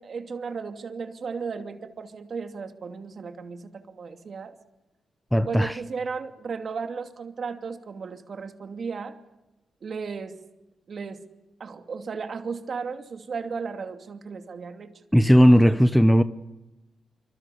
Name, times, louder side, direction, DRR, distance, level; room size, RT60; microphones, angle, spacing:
voice 1, 0.0-4.5 5.3-9.2 9.8-10.4 10.9-11.2 11.6-15.0 15.6-15.8, right 5 dB, 55° right, 2.6 m, -35 dB
voice 2, 5.3-5.8 15.1-16.2, equal, ahead, 0.9 m, -17 dB
26.5 x 25.5 x 7.0 m
cardioid pair, 90°, 0 cm